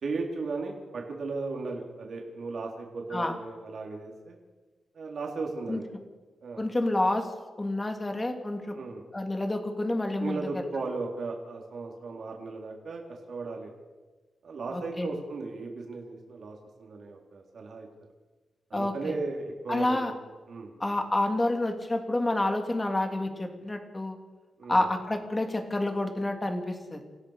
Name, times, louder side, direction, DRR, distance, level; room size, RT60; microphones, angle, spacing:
voice 1, 0.0-4.4 4.9-5.9 6.4-6.6 8.7-9.0 10.2-13.0 13.3-13.7 14.4-17.9 18.7-20.1 20.5-20.7 24.6-24.8, right 3 dB, 60° right, 0 dB, 4.0 m, -36 dB
voice 2, 6.6-7.3 7.6-8.7 9.1-10.6 14.7-15.1 18.7-19.1 19.7-20.1 20.8-24.2 24.7-27.0, left 1 dB, 20° left, 4 dB, 3.2 m, -28 dB
29.0 x 16.0 x 6.7 m, 1.3 s
wide cardioid pair, 125°, 0 cm